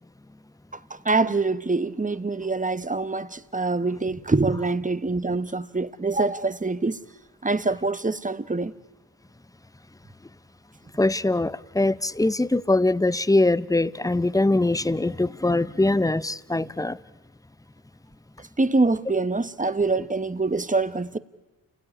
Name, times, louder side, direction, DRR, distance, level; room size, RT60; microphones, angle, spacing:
voice 1, 0.9-7.0 7.4-8.7 18.6-21.2, right 3 dB, 20° right, 1.2 m, -25 dB
voice 2, 11.0-17.0, left 2 dB, 10° left, 0.8 m, -22 dB
29.0 x 19.0 x 9.9 m
cardioid pair, 50°, 39 cm